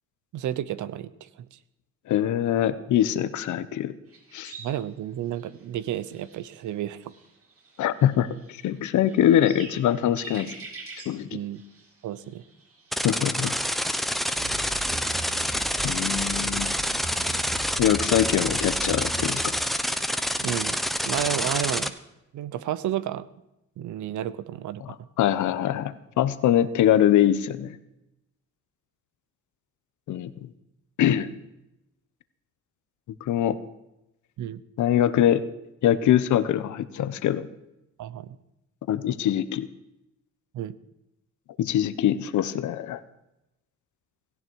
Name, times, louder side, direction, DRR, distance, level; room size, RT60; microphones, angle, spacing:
voice 1, 0.3-1.6 4.6-7.1 11.3-11.6 12.0-12.4 20.4-20.8 21.1-21.9 22.3-23.3 23.8-25.0 34.4-34.6 38.0-38.4 40.5-40.7, right 11 dB, 75° right, 16 dB, 0.9 m, -31 dB
voice 2, 2.1-3.9 4.3-4.5 7.8-8.3 8.6-10.6 11.1-11.4 13.0-13.5 15.8-16.7 17.8-19.4 24.8-27.8 30.1-30.3 31.0-31.3 33.2-33.6 34.8-35.4 35.8-37.5 38.9-39.7 41.6-43.0, left 11 dB, 75° left, 14 dB, 1.0 m, -23 dB
sound 1, 4.1-17.1, right 4 dB, 50° right, 6.6 m, -49 dB
sound 2, 12.9-21.9, equal, ahead, 1.0 m, -27 dB
sound 3, 14.3-19.5, right 2 dB, 15° right, 2.4 m, -38 dB
17.5 x 15.0 x 4.7 m, 0.89 s
cardioid pair, 90°, 30 cm